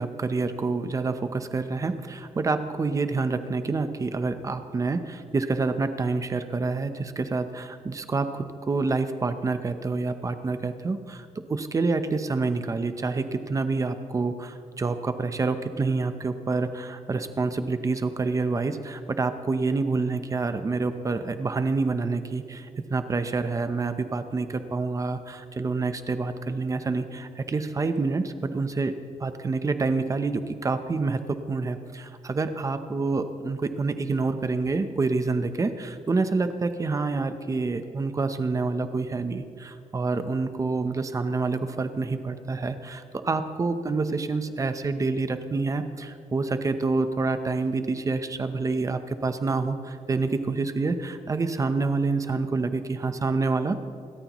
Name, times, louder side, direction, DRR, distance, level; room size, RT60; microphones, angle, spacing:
voice 1, 0.0-28.9 29.2-53.7, right 3 dB, 25° right, 9 dB, 0.8 m, -27 dB
28.5 x 13.0 x 3.1 m, 2.6 s
wide cardioid pair, 155°, 13 cm